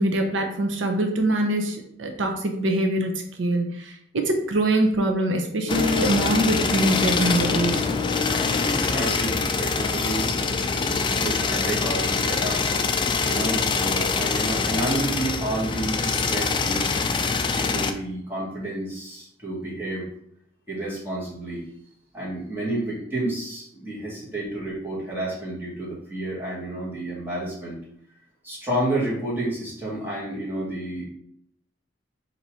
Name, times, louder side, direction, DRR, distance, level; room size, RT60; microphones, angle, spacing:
voice 1, 0.0-7.8, right 1 dB, 85° right, 3 dB, 0.7 m, -23 dB
sound 1, 5.7-17.9, left 4 dB, 25° left, 0.3 m, -24 dB
voice 2, 8.7-12.6 13.2-20.1 20.7-21.6 22.1-27.8 28.4-31.0, right 1 dB, 10° right, -7 dB, 1.7 m, -30 dB
4.0 x 2.8 x 4.7 m, 0.70 s
head